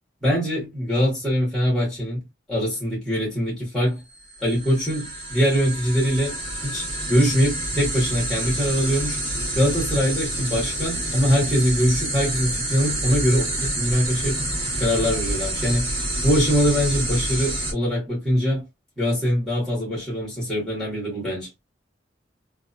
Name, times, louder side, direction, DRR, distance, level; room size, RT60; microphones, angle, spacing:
voice 1, 0.2-2.2 2.5-4.0 4.4-9.2 9.5-14.5 14.8-15.9 16.2-18.6 19.0-21.5, equal, ahead, 1.3 m, -23 dB
sound 1, 4.1-17.7, right 1 dB, 30° right, 1.6 m, -28 dB
2.7 x 2.2 x 2.5 m
head